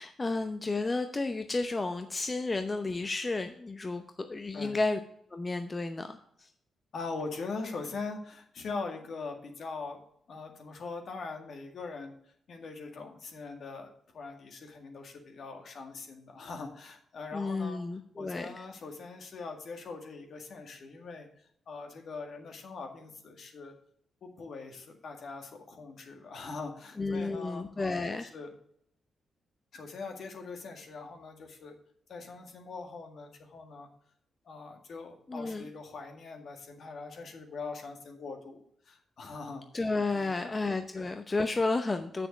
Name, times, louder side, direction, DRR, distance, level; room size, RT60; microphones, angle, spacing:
voice 1, 0.0-5.0 5.3-6.5 17.3-18.6 27.0-28.3 35.3-35.7 39.7-42.3, left 3 dB, 30° left, 7 dB, 0.8 m, -32 dB
voice 2, 6.9-10.0 10.3-12.2 12.5-17.8 18.2-23.7 24.2-28.5 29.7-31.8 32.1-33.9 34.5-38.6 38.8-39.7 40.4-40.6 40.9-41.1, left 4 dB, 65° left, 4 dB, 1.8 m, -42 dB
7.1 x 6.3 x 6.1 m, 0.67 s
supercardioid pair, 55°, 0 cm